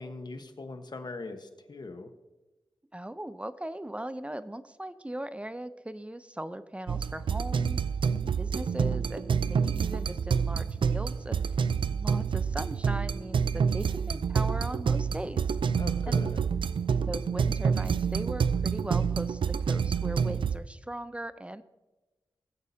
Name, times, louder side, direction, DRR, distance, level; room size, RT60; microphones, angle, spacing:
voice 1, 0.0-2.1 15.7-16.5, left 3 dB, 55° left, 7 dB, 1.2 m, -41 dB
voice 2, 2.9-7.8 8.2-11.6 11.9-15.6 16.0-16.2 17.0-21.6, right 1 dB, 15° right, 13 dB, 0.5 m, -39 dB
sound 1, 6.9-20.6, right 6 dB, 70° right, 0.4 m, -28 dB
18.0 x 8.0 x 2.8 m, 1.1 s
cardioid pair, 55°, 9 cm